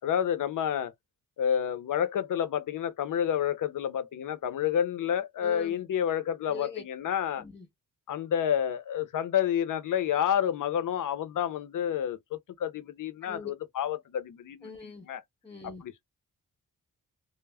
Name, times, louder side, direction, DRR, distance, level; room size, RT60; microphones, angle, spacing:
voice 1, 0.0-0.9 1.4-7.4 8.1-14.7 15.1-15.2 15.6-16.0, left 9 dB, 65° left, 0.6 m, -29 dB
voice 2, 5.4-5.8 6.5-6.8 7.4-7.7 13.2-13.5 14.6-15.1 15.4-15.8, left 3 dB, 10° left, 0.6 m, -43 dB
2.1 x 2.0 x 3.3 m
wide cardioid pair, 150°, 34 cm